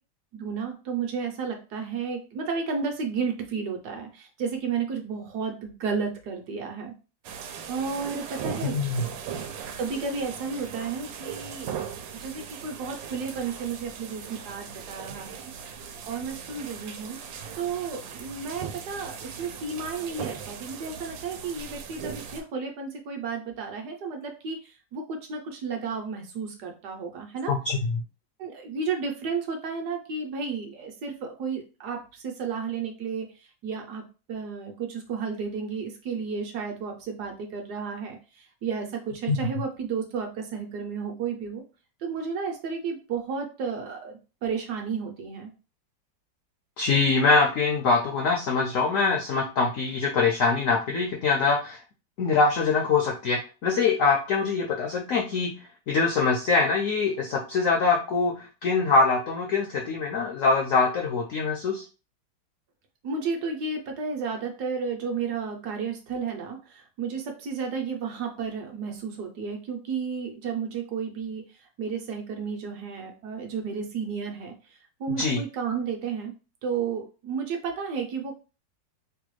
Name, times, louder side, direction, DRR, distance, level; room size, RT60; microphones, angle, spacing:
voice 1, 0.3-6.9 7.7-8.8 9.8-11.8 12.1-15.5 16.0-17.2 17.5-27.5 28.4-33.3 33.6-34.0 34.3-41.6 42.0-45.5 63.0-71.4 71.8-74.5 75.0-76.3 76.6-78.3, right 5 dB, 70° right, 3 dB, 1.1 m, -32 dB
sound 1, 7.2-22.4, right 7 dB, 90° right, 1.3 m, -39 dB
voice 2, 8.6-9.0 27.5-28.0 39.3-39.4 46.8-51.8 52.2-55.5 55.9-61.8 75.2-75.4, left 4 dB, 75° left, 1 dB, 0.7 m, -24 dB
3.2 x 2.3 x 3.0 m, 0.32 s
omnidirectional pair, 2.0 m